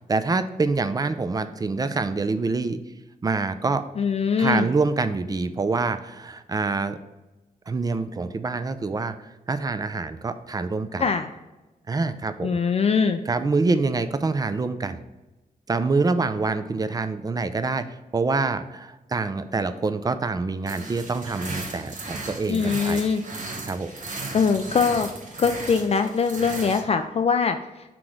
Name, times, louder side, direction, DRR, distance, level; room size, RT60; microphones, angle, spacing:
voice 1, 0.1-2.8 3.2-3.8 4.4-7.0 7.7-9.1 9.5-11.1 11.9-12.6 13.3-15.0 15.7-17.9 18.1-23.1 23.6-23.9, right 3 dB, 25° right, 11 dB, 0.4 m, -26 dB
voice 2, 4.0-4.7 11.0-11.3 12.4-13.2 22.5-23.2 24.3-25.1 25.4-27.6, left 5 dB, 45° left, 7 dB, 0.4 m, -22 dB
sound 1, 20.7-26.8, right 3 dB, 60° right, 1.1 m, -36 dB
6.0 x 3.8 x 4.7 m, 1.1 s
cardioid pair, 100°, 15 cm